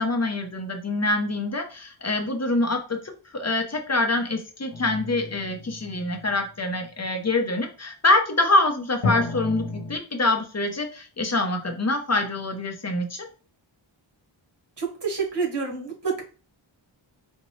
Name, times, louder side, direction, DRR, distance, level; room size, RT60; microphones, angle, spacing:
voice 1, 0.0-13.3, left 2 dB, 35° left, 4 dB, 0.7 m, -25 dB
sound 1, 4.7-6.5 9.0-10.0, left 3 dB, 90° left, 0.8 m, -32 dB
voice 2, 14.8-16.2, right 5 dB, 60° right, 0 dB, 1.3 m, -28 dB
3.9 x 2.2 x 3.1 m, 0.36 s
wide cardioid pair, 75°, 48 cm